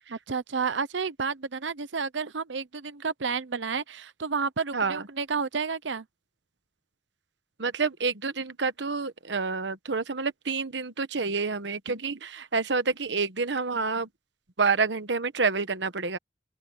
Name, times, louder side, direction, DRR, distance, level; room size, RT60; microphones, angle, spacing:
voice 1, 0.1-6.0, right 5 dB, 85° right, 0.9 m, -31 dB
voice 2, 7.6-14.1 14.6-16.2, right 4 dB, 70° right, 1.2 m, -28 dB
open air
head